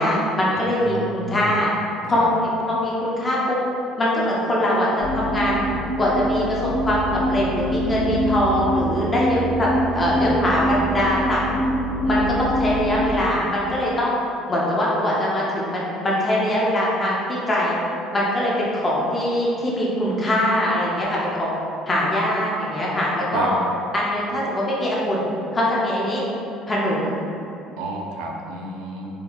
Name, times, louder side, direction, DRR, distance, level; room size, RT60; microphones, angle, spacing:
voice 1, 0.0-1.7 2.1-3.6 4.0-5.7 6.0-11.4 12.0-14.2 14.5-17.8 18.1-21.5 21.9-23.6 23.9-25.3 25.5-26.2 26.7-27.1, left 1 dB, 15° left, -5 dB, 0.5 m, -22 dB
voice 2, 0.5-1.6 2.0-2.3 23.3-23.5 27.8-29.1, right 3 dB, 85° right, 0 dB, 0.4 m, -31 dB
sound 1, 5.0-13.1, equal, 40° left, 0.8 m, -24 dB
4.3 x 2.7 x 2.3 m, 2.8 s
cardioid pair, 180°, 0 cm